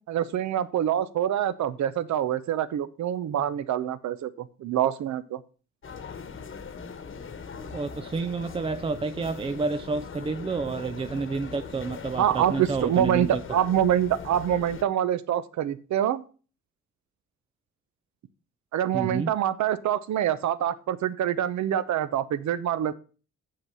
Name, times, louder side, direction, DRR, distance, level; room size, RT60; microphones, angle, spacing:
voice 1, 0.1-5.4 12.2-16.2 18.7-22.9, right 10 dB, 65° right, 0.8 m, -26 dB
sound 1, 5.8-14.8, left 5 dB, 45° left, 1.2 m, -40 dB
voice 2, 7.7-13.6 18.9-19.4, right 4 dB, 20° right, 0.4 m, -30 dB
7.7 x 6.5 x 5.5 m
cardioid pair, 90°, 30 cm